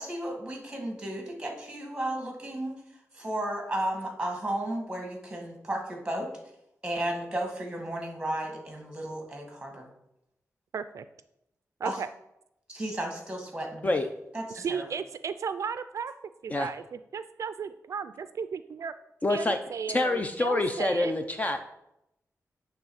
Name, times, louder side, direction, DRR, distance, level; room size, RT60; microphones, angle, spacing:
voice 1, 0.0-2.8 3.1-6.3 6.8-9.9 11.8-12.0 12.7-13.9 14.3-14.8, right 1 dB, 15° right, 1 dB, 1.9 m, -33 dB
voice 2, 10.7-11.0 11.8-12.1 14.5-16.1 16.4-18.9 19.3-21.1, right 6 dB, 70° right, 12 dB, 0.3 m, -35 dB
voice 3, 19.2-19.6 19.9-21.6, left 2 dB, 25° left, 7 dB, 0.5 m, -26 dB
8.8 x 3.4 x 6.3 m, 0.83 s
wide cardioid pair, 125°, 6 cm